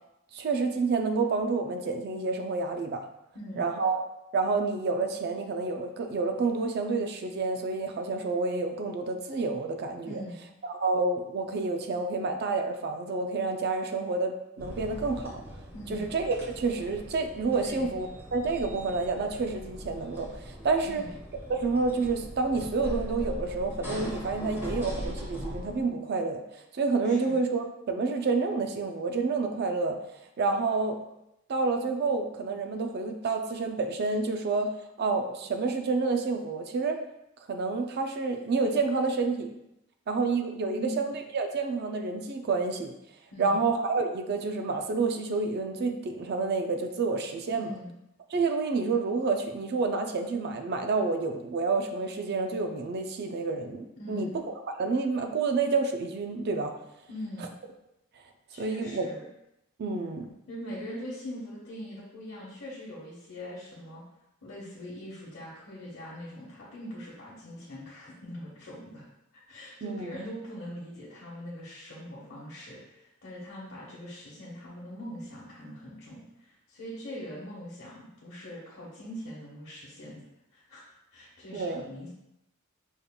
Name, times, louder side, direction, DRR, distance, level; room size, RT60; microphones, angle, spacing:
voice 1, 0.3-3.0 3.6-4.1 4.3-10.2 10.6-15.4 15.9-21.0 21.5-26.4 26.7-30.0 30.4-31.0 31.5-37.0 37.5-39.5 40.1-42.9 43.4-47.7 48.3-54.3 54.7-56.7 58.6-59.1 59.8-60.3 69.8-70.2 81.5-81.9, right 3 dB, 50° right, 5 dB, 0.4 m, -29 dB
voice 2, 3.3-3.7 10.0-10.4 15.7-16.1 17.6-17.9 20.8-21.2 27.0-27.3 40.7-41.0 43.3-43.6 47.5-48.0 54.0-54.4 57.1-57.5 58.5-59.2 60.5-64.0 64.4-69.0 69.5-80.2 80.5-80.8 81.1-82.1, equal, 60° left, -8 dB, 1.0 m, -42 dB
sound 1, 14.6-25.8, equal, 10° right, 1.2 m, -40 dB
5.2 x 3.6 x 2.3 m, 0.86 s
head